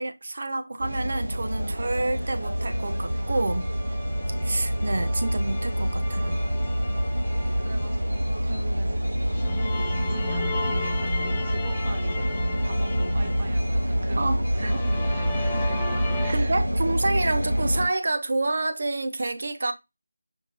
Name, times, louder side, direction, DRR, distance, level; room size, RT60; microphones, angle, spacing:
voice 1, 0.0-3.7 4.4-6.4 14.2-14.7 16.3-19.7, right 2 dB, 50° right, 0.6 m, -28 dB
sound 1, 0.8-17.9, equal, 80° right, 1.8 m, -26 dB
sound 2, 2.5-8.2 9.3-14.2 14.5-16.3, left 3 dB, 15° left, 0.6 m, -37 dB
voice 2, 7.6-16.7, right 2 dB, 30° right, 0.9 m, -41 dB
5.3 x 2.5 x 2.9 m
figure-of-eight pair, 165°, 0 cm